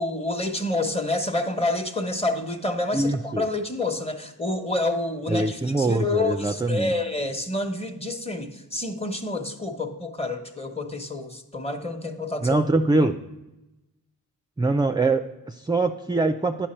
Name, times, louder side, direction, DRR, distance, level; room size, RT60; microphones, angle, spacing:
voice 1, 0.0-12.6, left 2 dB, 15° left, 6 dB, 1.0 m, -28 dB
voice 2, 2.9-3.5 5.3-6.9 12.4-13.2 14.6-16.7, right 2 dB, 10° right, 7 dB, 0.3 m, -23 dB
9.8 x 6.0 x 4.3 m, 1.0 s
wide cardioid pair, 75°, 36 cm